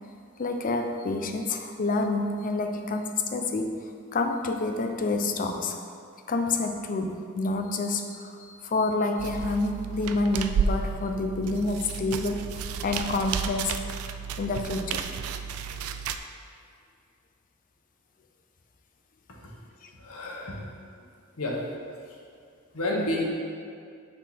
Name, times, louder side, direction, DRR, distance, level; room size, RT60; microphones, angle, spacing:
voice 1, 0.4-3.8 4.1-5.8 6.3-13.8 14.4-15.1 19.8-19.9, left 2 dB, 40° left, 5 dB, 0.5 m, -28 dB
sound 1, 9.2-16.2, right 6 dB, 80° right, 0.4 m, -32 dB
voice 2, 20.0-20.6 21.4-21.6 22.7-23.3, left 1 dB, 85° left, -2 dB, 1.2 m, -29 dB
8.2 x 3.8 x 4.2 m, 2.3 s
head